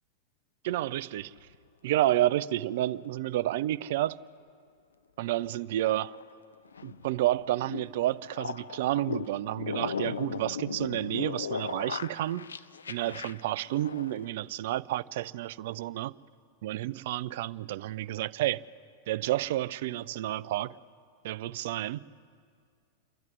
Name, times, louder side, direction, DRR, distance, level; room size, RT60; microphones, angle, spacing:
voice 1, 0.6-1.3 1.8-4.2 5.2-6.1 6.8-12.5 12.9-16.1 16.6-18.6 19.1-20.8 21.2-22.0, right 14 dB, 55° right, 0.5 m, -30 dB
sound 1, 1.2-1.6 5.4-14.3, left 6 dB, 70° left, 0.6 m, -38 dB
28.5 x 12.0 x 9.6 m
figure-of-eight pair, 90°, 0 cm